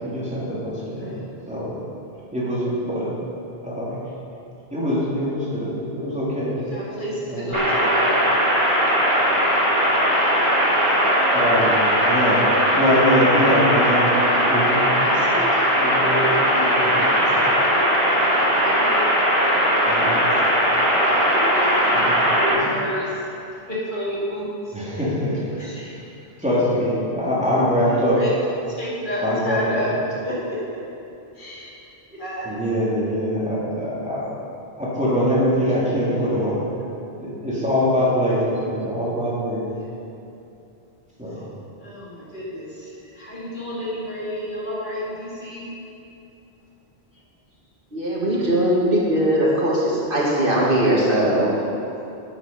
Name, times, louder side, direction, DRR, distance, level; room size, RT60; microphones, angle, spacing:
voice 1, 0.0-1.1 1.5-1.7 2.3-3.1 3.6-4.0 4.7-6.6 7.3-7.6 8.5-8.7 11.3-15.0 15.8-16.2 16.6-17.3 19.8-20.3 21.9-22.6 24.7-25.7 26.4-28.2 29.2-29.8 32.4-34.3 34.8-36.6 37.2-39.7 41.2-41.5, equal, 5° right, -9 dB, 3.0 m, -23 dB
voice 2, 0.8-1.2 6.6-8.1 14.6-15.6 15.9-17.0 17.5-17.9 18.6-19.1 19.5-20.1 20.4-20.7 20.9-21.7 22.3-23.1 23.7-24.5 25.6-25.9 27.7-28.3 28.7-29.9 30.2-30.8 31.4-31.7 32.1-32.6 36.2-36.3 39.7-39.9 41.8-42.9 43.2-45.7 51.2-51.7, equal, 50° left, -7 dB, 2.4 m, -31 dB
sound 1, 7.5-22.5, equal, 30° right, 2.0 m, -19 dB
voice 3, 47.9-51.5, right 1 dB, 55° right, -5 dB, 1.9 m, -20 dB
10.0 x 8.9 x 5.4 m, 2.8 s
omnidirectional pair, 1.1 m